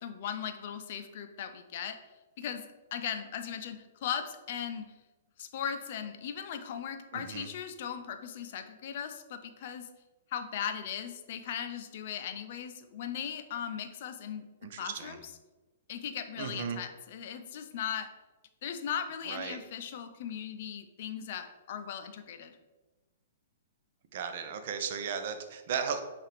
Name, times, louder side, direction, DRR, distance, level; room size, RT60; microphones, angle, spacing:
voice 1, 0.0-2.0 2.4-2.6 2.9-4.9 5.4-9.9 10.3-14.5 14.8-15.2 15.9-18.1 18.6-22.6, left 8 dB, 55° left, 8 dB, 0.4 m, -38 dB
voice 2, 7.1-7.5 14.6-15.2 16.4-16.8 19.3-19.6 24.1-26.0, right 7 dB, 60° right, 7 dB, 0.5 m, -35 dB
5.5 x 2.5 x 3.5 m, 1.1 s
hypercardioid pair, 130°, 0 cm